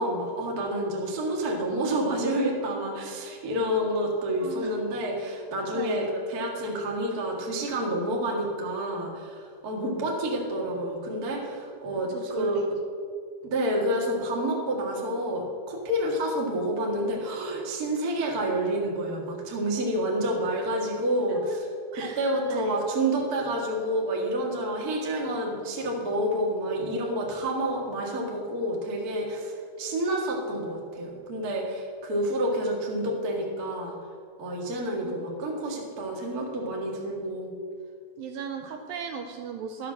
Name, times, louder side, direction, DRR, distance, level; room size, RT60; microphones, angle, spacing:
voice 1, 0.0-12.6 13.4-21.4 22.2-34.0 34.4-37.5, right 1 dB, 70° right, -1 dB, 0.8 m, -29 dB
voice 2, 4.4-4.8 5.7-6.0 12.1-12.7 21.3-21.6 21.9-22.2 22.5-22.8 35.0-35.2 35.4-35.8 38.2-39.9, right 6 dB, 85° right, 4 dB, 2.1 m, -37 dB
12.0 x 7.4 x 6.2 m, 2.2 s
omnidirectional pair, 4.6 m